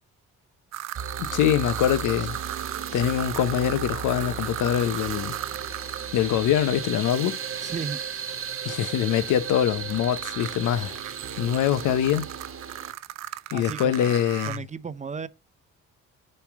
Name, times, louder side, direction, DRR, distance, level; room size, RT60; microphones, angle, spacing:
sound 1, 0.7-6.1 9.9-14.6, right 14 dB, 60° right, 0.4 m, -36 dB
sound 2, 0.9-12.9, right 7 dB, 45° right, 1.2 m, -35 dB
voice 1, 1.2-2.4 2.9-5.4 6.1-7.4 8.6-11.0 11.4-12.3 13.5-14.6, left 10 dB, 80° left, 0.7 m, -24 dB
voice 2, 7.6-8.0 13.5-14.0 14.5-15.3, right 5 dB, 25° right, 0.6 m, -34 dB
6.9 x 3.3 x 6.0 m
cardioid pair, 90°, 30 cm